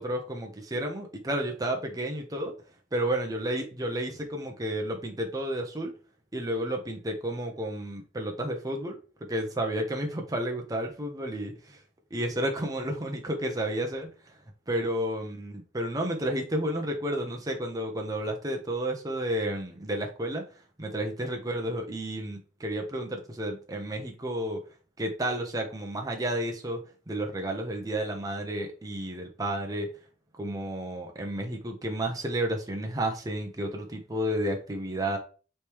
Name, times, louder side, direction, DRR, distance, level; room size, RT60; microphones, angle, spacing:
voice 1, 0.0-2.5 2.9-5.9 6.3-9.0 9.3-11.8 12.1-14.3 14.7-20.4 20.8-24.6 25.0-29.9 30.3-35.2, right 1 dB, 20° right, 2 dB, 0.7 m, -31 dB
5.1 x 3.3 x 2.9 m, 0.36 s
head